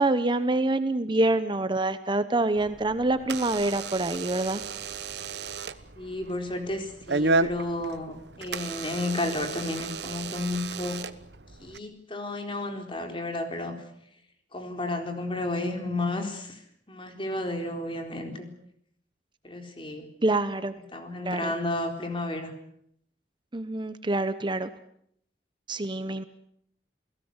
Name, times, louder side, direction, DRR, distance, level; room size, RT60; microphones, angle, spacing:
voice 1, 0.0-4.6 20.2-20.7 21.2-21.5 23.5-24.7 25.7-26.2, right 2 dB, 25° right, 11 dB, 1.0 m, -26 dB
Door / Alarm, 2.5-11.8, right 3 dB, 70° right, 1.2 m, -33 dB
voice 2, 6.0-11.0 11.6-13.8 14.5-16.6 16.9-18.5 19.4-20.1 20.9-22.5, left 2 dB, 30° left, 5 dB, 4.1 m, -32 dB
29.0 x 17.5 x 8.1 m, 0.72 s
head